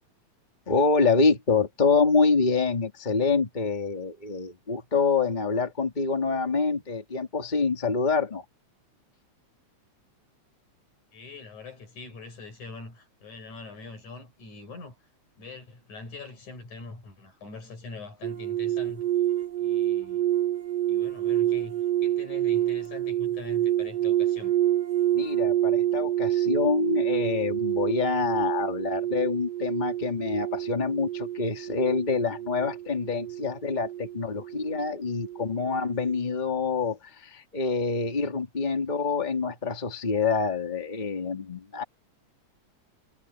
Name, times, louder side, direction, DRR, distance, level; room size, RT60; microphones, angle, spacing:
voice 1, 0.7-8.4 25.1-41.8, left 4 dB, 15° left, 2.4 m, -26 dB
voice 2, 11.1-15.0 15.4-19.1 19.6-20.3 20.9-24.5, left 3 dB, 80° left, 7.6 m, -43 dB
sound 1, 18.2-35.6 35.8-36.2, right 12 dB, 70° right, 0.9 m, -28 dB
omnidirectional pair, 3.4 m